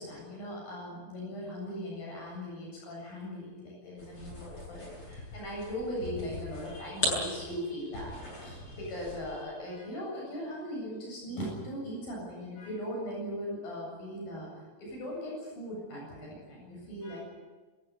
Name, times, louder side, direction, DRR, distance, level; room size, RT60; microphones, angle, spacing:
voice 1, 0.0-17.2, equal, 80° left, -2 dB, 9.7 m, -39 dB
sound 1, 4.0-9.4, left 1 dB, 25° left, 8.7 m, -38 dB
27.0 x 15.5 x 9.6 m, 1.3 s
omnidirectional pair, 4.1 m